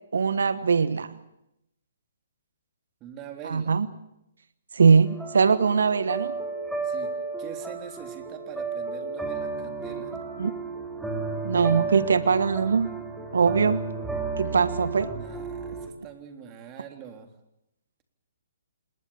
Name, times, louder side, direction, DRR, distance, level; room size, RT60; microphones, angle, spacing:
voice 1, 0.1-1.1 3.4-3.9 4.7-6.3 10.4-10.5 11.4-13.1 13.3-13.8 14.4-15.1, right 5 dB, 70° right, 14 dB, 1.2 m, -21 dB
voice 2, 3.0-3.8 6.8-7.1 7.4-10.1 15.1-17.3, right 9 dB, 25° right, 5 dB, 3.5 m, -43 dB
sound 1, 5.0-15.9, right 4 dB, 5° right, 3.8 m, -33 dB
27.5 x 21.0 x 7.3 m, 0.85 s
hypercardioid pair, 135°, 0 cm